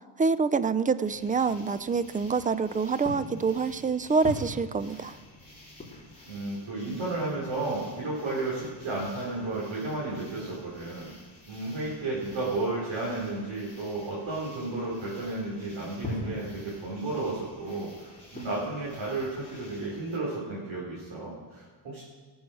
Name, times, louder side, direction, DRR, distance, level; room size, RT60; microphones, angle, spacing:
voice 1, 0.2-5.2, right 5 dB, 15° right, 15 dB, 0.4 m, -26 dB
sound 1, 1.0-20.2, left 1 dB, 15° left, 3.8 m, -45 dB
voice 2, 6.2-11.1 11.5-22.0, right 2 dB, 70° right, -7 dB, 4.1 m, -33 dB
18.5 x 7.2 x 6.3 m, 1.4 s
cardioid pair, 95°, 49 cm